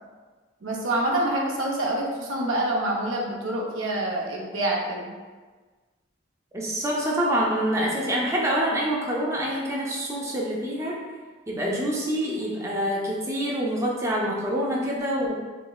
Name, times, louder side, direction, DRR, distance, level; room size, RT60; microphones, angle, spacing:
voice 1, 0.6-5.1, right 1 dB, 85° right, -2 dB, 0.6 m, -26 dB
voice 2, 6.5-11.0 11.5-15.3, equal, 15° right, -3 dB, 0.4 m, -26 dB
3.9 x 2.1 x 2.3 m, 1.4 s
head